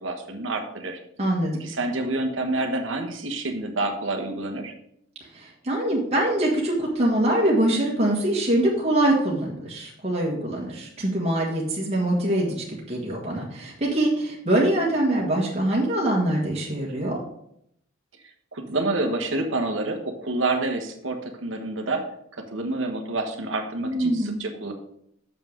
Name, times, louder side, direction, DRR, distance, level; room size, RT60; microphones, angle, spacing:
voice 1, 0.0-1.0 1.6-4.7 18.5-22.1 22.5-24.7, right 2 dB, 65° right, 3 dB, 1.3 m, -28 dB
voice 2, 1.2-1.5 5.3-17.2 23.8-24.4, right 1 dB, 30° right, -4 dB, 1.7 m, -24 dB
6.8 x 5.7 x 6.4 m, 0.74 s
head